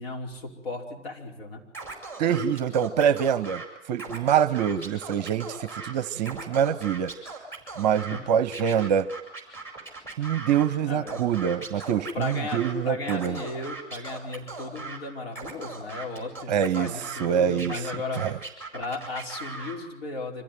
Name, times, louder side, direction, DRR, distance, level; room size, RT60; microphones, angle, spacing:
voice 1, 0.0-1.6 8.1-8.3 10.8-11.2 12.1-18.3 18.7-20.4, left 3 dB, 55° left, 0 dB, 5.2 m, -35 dB
Scratching (performance technique), 1.7-3.6 3.9-5.9 6.2-8.2 8.5-10.7 11.1-12.7 13.0-15.0 15.3-17.3 17.6-19.8, right 3 dB, 5° left, 5.0 m, -39 dB
voice 2, 2.2-3.6 3.9-7.1 7.8-9.1 10.2-13.4 16.5-16.9 17.2-17.8 18.2-18.4, right 8 dB, 35° right, 16 dB, 0.9 m, -25 dB
25.5 x 15.0 x 9.6 m, 0.92 s
figure-of-eight pair, 110°, 35 cm